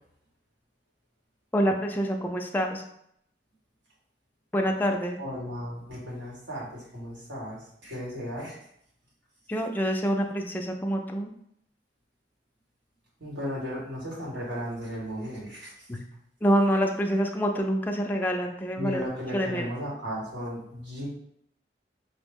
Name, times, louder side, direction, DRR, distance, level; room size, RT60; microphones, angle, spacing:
voice 1, 1.5-2.8 4.5-5.2 9.5-11.3 15.9-16.0 16.4-19.0 19.3-19.6, equal, 10° left, 2 dB, 0.4 m, -26 dB
voice 2, 5.2-8.5 13.2-15.7 18.8-21.1, equal, 90° right, -4 dB, 1.5 m, -35 dB
4.8 x 2.1 x 3.4 m, 0.72 s
head